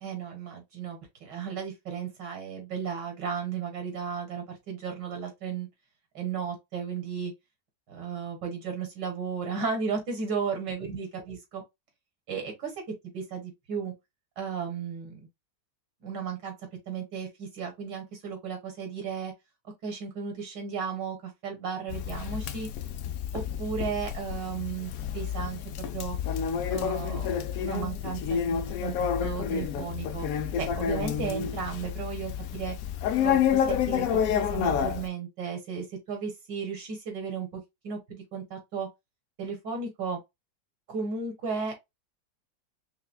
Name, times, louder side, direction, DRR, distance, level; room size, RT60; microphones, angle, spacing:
voice 1, 0.0-5.7 6.1-7.3 7.9-11.6 12.3-13.9 14.4-15.2 16.0-16.5 16.9-19.3 19.8-22.7 23.3-25.6 25.9-26.2 26.7-30.3 30.6-32.8 33.2-38.9 39.4-40.2 40.9-41.7, right 6 dB, 80° right, 2.0 m, -34 dB
Conversation, 21.9-35.1, left 8 dB, 70° left, 0.8 m, -29 dB
5.7 x 2.2 x 2.2 m
omnidirectional pair, 1.9 m